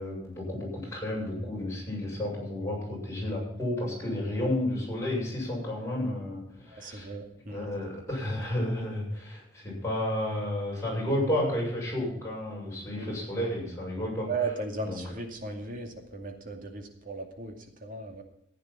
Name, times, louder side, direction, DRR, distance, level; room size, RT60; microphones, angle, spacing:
voice 1, 0.0-7.1 7.5-14.5 14.8-15.0, left 1 dB, 15° left, -4 dB, 7.1 m, -32 dB
voice 2, 6.7-7.7 13.0-13.1 14.3-17.5 17.8-18.2, right 3 dB, 50° right, 4 dB, 2.4 m, -36 dB
15.0 x 9.5 x 5.5 m, 0.78 s
head